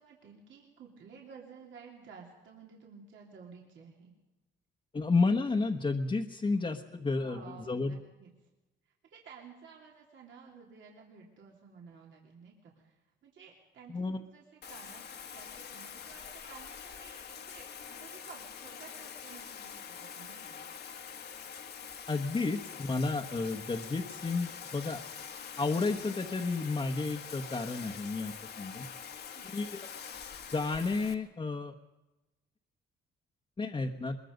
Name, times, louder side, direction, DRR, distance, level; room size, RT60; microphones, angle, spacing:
voice 1, 0.0-4.1 7.1-8.3 9.1-15.0 15.3-20.6 29.2-29.5, right 6 dB, 70° right, -1 dB, 3.2 m, -53 dB
voice 2, 4.9-8.0 13.9-14.2 22.1-25.0 25.6-28.9 29.5-29.8 30.5-31.7 33.6-34.2, left 3 dB, 25° left, 2 dB, 1.3 m, -31 dB
Bathtub (filling or washing), 14.6-31.1, left 7 dB, 55° left, 1.6 m, -45 dB
22.0 x 22.0 x 5.3 m, 1.1 s
cardioid pair, 90°, 20 cm